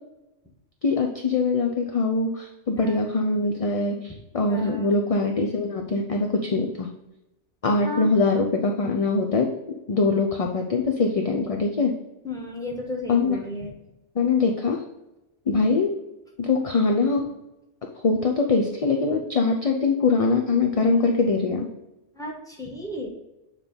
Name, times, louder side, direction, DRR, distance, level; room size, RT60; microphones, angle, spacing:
voice 1, 0.8-6.9 7.6-9.5 9.9-11.9 13.1-13.4 14.2-14.8 15.5-15.9 16.4-17.3 18.0-21.7, left 3 dB, 45° left, 2 dB, 0.5 m, -23 dB
voice 2, 4.5-4.9 7.8-8.1 12.2-13.7 22.2-23.1, left 1 dB, 5° left, -1 dB, 1.2 m, -33 dB
7.4 x 3.3 x 5.2 m, 0.96 s
omnidirectional pair, 1.2 m